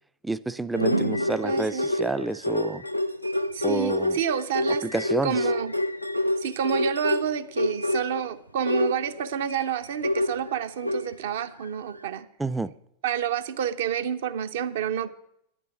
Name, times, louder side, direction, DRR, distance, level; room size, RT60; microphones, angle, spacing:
voice 1, 0.2-2.8 3.6-4.1 4.8-5.4 12.4-12.7, right 2 dB, 5° right, 16 dB, 0.4 m, -29 dB
sound 1, 0.7-8.3 8.6-11.4 11.9-12.0, left 1 dB, 90° left, 0.4 m, -27 dB
voice 2, 0.9-1.9 3.5-4.9 5.2-5.7 6.4-12.3 13.0-15.1, right 8 dB, 55° right, 11 dB, 0.7 m, -29 dB
9.8 x 8.6 x 7.0 m, 0.77 s
figure-of-eight pair, 90°, 0 cm